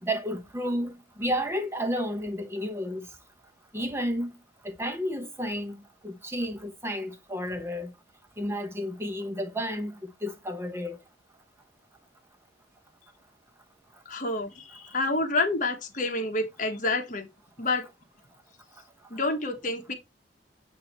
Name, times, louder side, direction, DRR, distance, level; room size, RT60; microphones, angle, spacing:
voice 1, 0.0-3.1 3.7-4.4 4.6-7.9 8.4-11.0, equal, 15° right, 1.0 m, -32 dB
voice 2, 14.1-17.3 17.6-17.9 19.1-19.9, left 2 dB, 45° left, 1.3 m, -28 dB
8.2 x 2.8 x 4.3 m
head